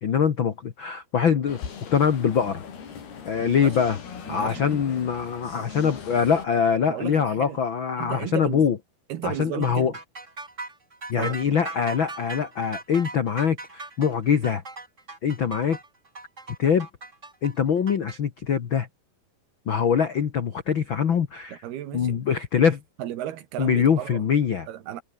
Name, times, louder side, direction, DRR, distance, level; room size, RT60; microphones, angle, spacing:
voice 1, 0.0-1.6 1.9-2.6 3.2-4.0 4.3-8.8 9.2-9.9 11.1-14.6 15.2-15.8 16.6-16.9 17.4-18.9 19.7-21.6 21.9-22.8 23.6-24.7, left 7 dB, 90° left, 1.0 m, -23 dB
sound 1, 1.5-6.5, left 7 dB, 70° left, 6.0 m, -40 dB
voice 2, 3.4-3.8 4.3-4.8 5.7-6.0 6.9-7.6 8.0-8.7 9.1-10.0 11.2-11.6 21.5-22.2 23.0-24.2 24.7-25.0, right 12 dB, 75° right, 3.5 m, -34 dB
sound 2, 9.6-18.2, right 3 dB, 20° right, 3.6 m, -39 dB
omnidirectional pair, 4.7 m